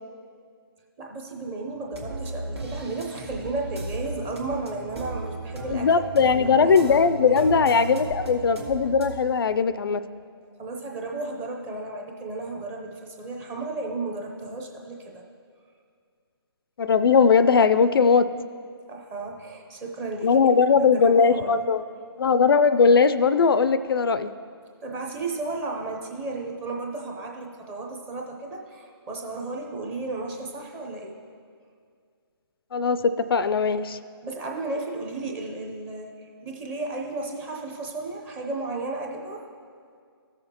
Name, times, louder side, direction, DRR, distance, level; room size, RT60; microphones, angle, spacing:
voice 1, 1.0-5.9 6.2-6.9 10.6-15.2 18.9-20.4 20.8-21.6 24.8-31.2 34.2-39.5, right 3 dB, 15° right, 0 dB, 0.7 m, -34 dB
sound 1, 1.9-9.1, right 2 dB, 90° right, 2.0 m, -36 dB
voice 2, 5.7-10.0 16.8-18.3 20.2-21.8 22.2-24.3 32.7-34.0, left 5 dB, 65° left, 13 dB, 0.4 m, -19 dB
15.5 x 6.5 x 2.9 m, 2.2 s
hypercardioid pair, 155°, 13 cm